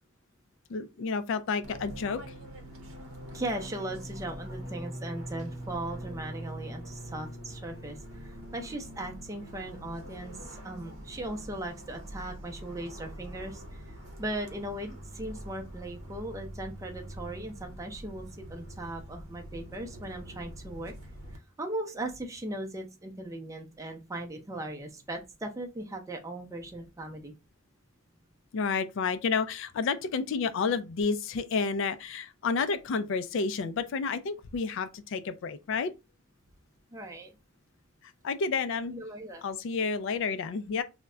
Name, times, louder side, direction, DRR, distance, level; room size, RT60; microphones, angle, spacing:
voice 1, 0.7-2.2 28.5-35.9 38.2-38.9 39.4-40.8, left 5 dB, 65° left, 0.3 m, -30 dB
Fixed-wing aircraft airplane, 1.6-21.4, right 1 dB, 85° right, 0.6 m, -43 dB
voice 2, 3.3-13.8 14.2-20.9 21.6-27.3 36.9-37.3 38.9-39.4, right 1 dB, 15° right, 0.4 m, -38 dB
2.2 x 2.1 x 3.6 m
head